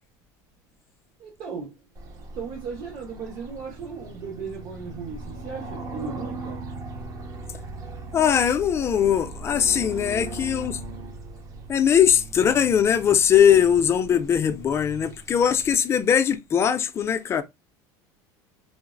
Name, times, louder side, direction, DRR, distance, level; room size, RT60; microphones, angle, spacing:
voice 1, 1.2-1.8 2.3-6.7, right 5 dB, 65° right, 1.2 m, -36 dB
sound 1, 2.0-15.7, right 2 dB, 35° right, 0.6 m, -39 dB
voice 2, 8.1-10.8 11.7-17.4, left 8 dB, 30° left, 0.4 m, -20 dB
3.8 x 2.0 x 2.4 m
supercardioid pair, 130°, 9 cm